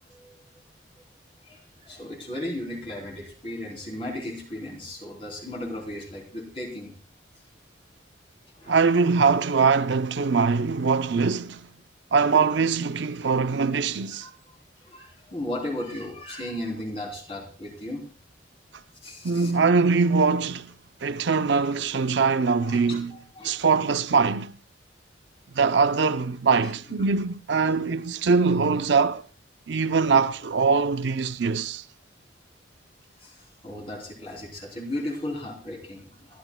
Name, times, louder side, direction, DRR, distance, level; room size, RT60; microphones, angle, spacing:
voice 1, 0.1-0.4 1.4-6.9 8.5-8.8 14.1-18.0 19.0-19.5 22.6-23.5 26.6-26.7 27.0-27.1 33.2-36.4, left 1 dB, 30° left, 3.2 m, -36 dB
voice 2, 8.7-11.6 12.1-14.3 19.2-20.7 21.0-23.1 23.4-24.5 25.5-29.2 29.7-31.8, right 4 dB, 65° right, 0.5 m, -22 dB
30.0 x 11.5 x 2.2 m
head